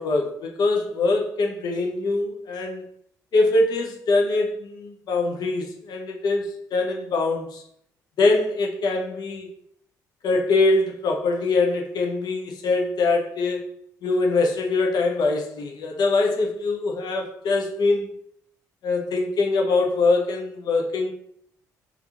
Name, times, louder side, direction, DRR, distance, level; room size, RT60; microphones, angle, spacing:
voice 1, 0.0-2.8 3.3-7.6 8.2-9.5 10.2-13.7 14.0-18.1 18.8-21.1, left 3 dB, 50° left, 2 dB, 0.6 m, -23 dB
3.4 x 2.4 x 2.9 m, 0.66 s
figure-of-eight pair, 45°, 9 cm